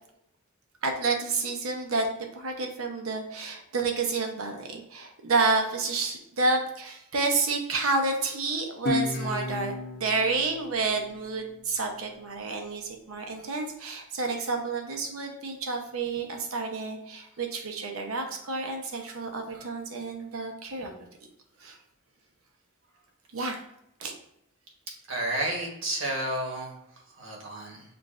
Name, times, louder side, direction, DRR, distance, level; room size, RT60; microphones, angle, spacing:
voice 1, 0.8-2.1 2.3-20.9 21.6-21.8 23.3-23.6 24.0-24.1, right 3 dB, 85° right, 3 dB, 0.8 m, -29 dB
Guitar, 8.9-12.1, left 3 dB, 55° left, 0.6 m, -34 dB
voice 2, 25.1-26.7 27.2-27.8, right 1 dB, 65° right, 0 dB, 1.2 m, -31 dB
6.9 x 2.5 x 2.4 m, 0.80 s
head